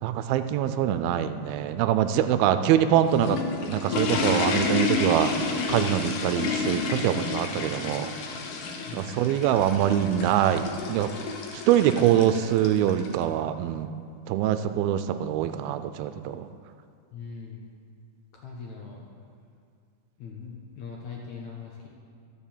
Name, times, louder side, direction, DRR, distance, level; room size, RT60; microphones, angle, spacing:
voice 1, 0.0-5.3 5.7-8.1 8.9-11.1 11.5-13.9 14.3-16.5, right 10 dB, 85° right, 10 dB, 2.4 m, -24 dB
sound 1, 2.8-13.1, left 4 dB, 85° left, 3.0 m, -30 dB
voice 2, 8.9-9.2 17.1-17.6 18.3-19.0 20.2-21.9, left 5 dB, 65° left, -1 dB, 1.9 m, -40 dB
12.5 x 6.7 x 7.2 m, 2.3 s
omnidirectional pair, 4.3 m